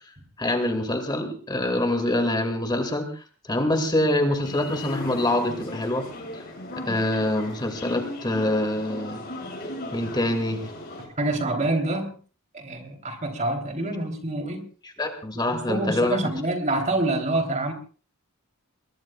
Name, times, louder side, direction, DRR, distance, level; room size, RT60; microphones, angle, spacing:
voice 1, 0.4-6.0 6.3-6.4 6.7-9.2 9.9-10.6 15.0-16.2, left 1 dB, 20° left, 2.2 m, -25 dB
sound 1, 4.4-11.1, left 1 dB, 45° left, 7.3 m, -37 dB
voice 2, 11.2-12.1 12.5-14.6 15.5-17.7, right 2 dB, 35° right, 3.4 m, -26 dB
22.0 x 21.5 x 2.4 m
head